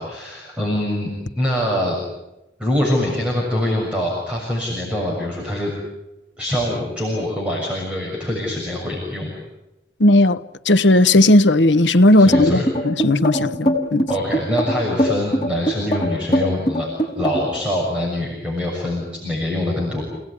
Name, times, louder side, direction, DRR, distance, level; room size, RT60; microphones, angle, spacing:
voice 1, 0.0-2.0 2.6-5.7 6.4-9.3 12.2-12.6 14.1-16.9 17.2-20.0, left 1 dB, 5° right, 6.9 m, -24 dB
voice 2, 10.0-14.1, left 1 dB, 85° left, 1.2 m, -15 dB
sound 1, 12.3-17.6, equal, 25° left, 5.9 m, -20 dB
29.0 x 19.0 x 9.9 m
head